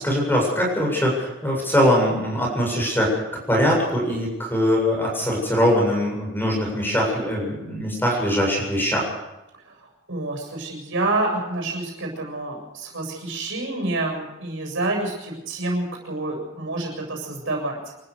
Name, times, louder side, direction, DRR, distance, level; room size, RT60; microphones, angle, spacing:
voice 1, 0.0-9.1, equal, 10° left, -1 dB, 7.6 m, -22 dB
voice 2, 9.8-17.8, right 2 dB, 65° right, 1 dB, 7.4 m, -28 dB
27.0 x 14.0 x 6.7 m, 0.96 s
head